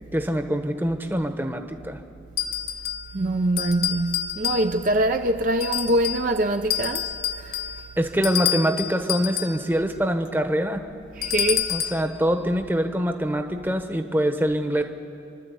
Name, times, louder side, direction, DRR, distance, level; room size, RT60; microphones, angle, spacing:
voice 1, 0.1-2.0 8.0-10.8 11.7-14.8, equal, 10° right, 1.0 m, -24 dB
sound 1, 2.4-3.1 3.6-5.0 5.6-6.3 6.7-9.6 11.2-12.1, left 10 dB, 55° left, 0.9 m, -28 dB
voice 2, 3.1-7.1 7.4-7.6 11.2-11.7, right 1 dB, 45° right, 0.6 m, -24 dB
28.5 x 12.0 x 8.2 m
head